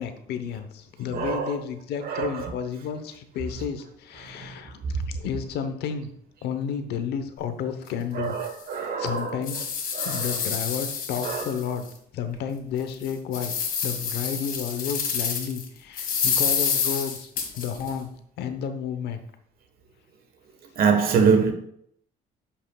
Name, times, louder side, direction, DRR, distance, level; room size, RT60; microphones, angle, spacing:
voice 1, 0.0-6.1 6.4-8.4 9.0-9.7 10.0-11.9 12.1-13.5 13.8-17.3 17.6-18.1 18.4-19.2, left 7 dB, 75° left, 0.9 m, -31 dB
voice 2, 1.1-1.6 2.0-2.5 4.4-4.5 8.1-9.5 9.9-10.5 11.2-11.5 20.8-21.5, right 6 dB, 60° right, 1.4 m, -25 dB
sound 1, 7.8-7.9 8.4-8.5 9.1-11.9 12.3-12.4 12.9-15.6 16.0-17.9, left 6 dB, 60° left, 1.8 m, -28 dB
10.0 x 5.8 x 2.4 m
cardioid pair, 110°, 17 cm